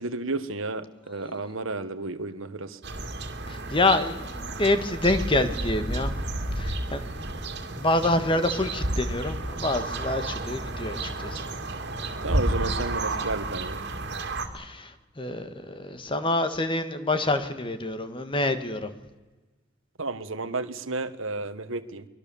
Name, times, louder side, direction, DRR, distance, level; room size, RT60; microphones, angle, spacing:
voice 1, 0.0-2.8 12.2-13.8 20.0-22.1, right 3 dB, 70° right, 12 dB, 1.5 m, -32 dB
voice 2, 1.2-1.5 3.5-6.3 6.5-7.3 7.7-11.4 14.5-18.9, left 2 dB, 25° left, 9 dB, 1.6 m, -27 dB
sound 1, 2.8-14.5, right 2 dB, 55° right, 2.4 m, -31 dB
23.5 x 22.0 x 7.1 m, 1.2 s
head